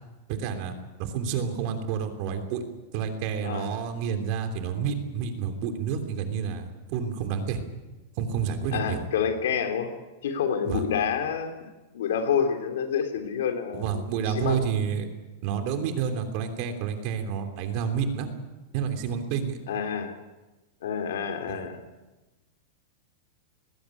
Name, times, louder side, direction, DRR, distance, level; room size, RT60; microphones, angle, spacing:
voice 1, 0.3-0.7 1.0-2.6 2.9-7.6 8.2-9.0 10.6-10.8 13.7-15.1 15.4-18.3 18.7-19.6 21.5-21.6, right 7 dB, 45° right, 6 dB, 3.1 m, -29 dB
voice 2, 8.7-9.9 10.2-11.5 11.9-14.7 19.7-20.1 20.8-21.8, left 7 dB, 80° left, 5 dB, 3.3 m, -28 dB
20.0 x 16.0 x 9.9 m, 1.1 s
supercardioid pair, 160°, 0 cm